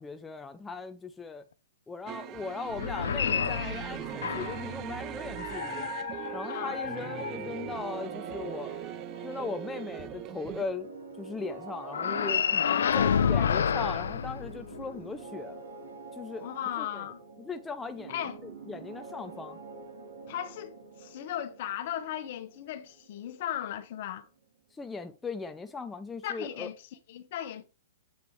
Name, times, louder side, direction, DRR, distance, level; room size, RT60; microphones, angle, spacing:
voice 1, 0.0-1.4 1.9-5.9 6.3-8.8 9.2-10.9 11.2-15.6 16.2-16.5 16.8-17.0 17.4-18.1 18.4-19.6 24.7-26.7, left 4 dB, 10° left, 0.6 m, -38 dB
sound 1, 2.1-10.6, right 12 dB, 30° right, 0.5 m, -40 dB
sound 2, 2.7-4.7 5.4-7.8 11.9-15.0, left 7 dB, 80° left, 0.6 m, -30 dB
voice 2, 6.5-6.8 12.6-13.6 16.4-17.2 18.1-18.4 20.3-24.3 26.2-27.6, left 11 dB, 55° left, 1.3 m, -36 dB
sound 3, 6.8-24.4, right 3 dB, 75° right, 2.8 m, -46 dB
8.0 x 6.8 x 3.3 m
hypercardioid pair, 135°, 0 cm